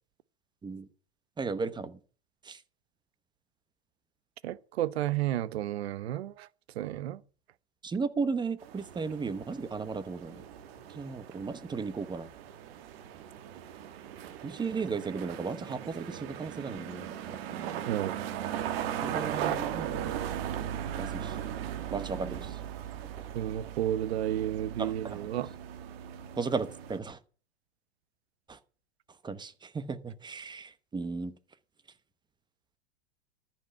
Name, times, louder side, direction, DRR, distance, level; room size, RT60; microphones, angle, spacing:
voice 1, 1.4-2.0 2.4-2.6 7.8-10.4 10.9-12.3 14.4-18.0 19.0-20.1 21.0-21.4 21.9-22.6 24.8-25.2 26.4-27.2 28.5-28.6 29.2-31.3, right 4 dB, 15° right, 1.0 m, -35 dB
voice 2, 4.4-6.5 6.8-7.2 17.9-18.2 23.3-25.5, right 12 dB, 85° right, 0.8 m, -32 dB
sound 1, 8.6-27.0, right 10 dB, 65° right, 1.9 m, -38 dB
13.5 x 5.8 x 7.9 m
hypercardioid pair, 120°, 31 cm